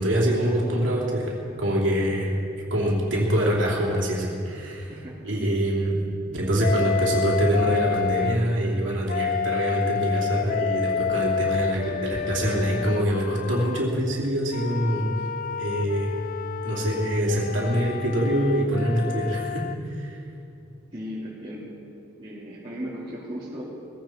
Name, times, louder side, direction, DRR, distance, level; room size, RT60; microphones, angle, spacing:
voice 1, 0.0-2.4 2.7-4.9 5.3-6.0 6.3-15.1 15.6-16.1 16.6-20.2, equal, 70° right, -3 dB, 3.1 m, -24 dB
voice 2, 4.9-5.5 20.9-21.6 22.2-23.6, equal, 25° right, -11 dB, 3.0 m, -36 dB
Wind instrument woodwind instrument, 6.6-8.4 9.1-13.8 14.5-19.8, left 7 dB, 45° left, 0.3 m, -29 dB
20.0 x 16.0 x 4.6 m, 2.7 s
head